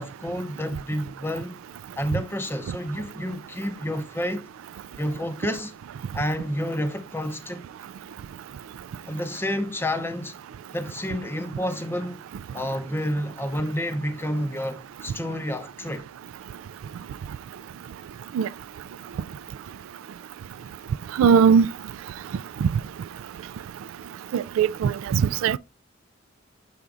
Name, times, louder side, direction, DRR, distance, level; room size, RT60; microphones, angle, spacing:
voice 1, 0.0-1.6 2.0-4.5 5.0-5.7 6.1-7.6 9.0-10.4 10.7-12.2 12.5-16.1, equal, 10° left, 0.6 m, -29 dB
voice 2, 21.2-21.7 22.6-22.7 24.3-25.6, right 6 dB, 85° right, 0.3 m, -19 dB
6.8 x 5.9 x 2.4 m
head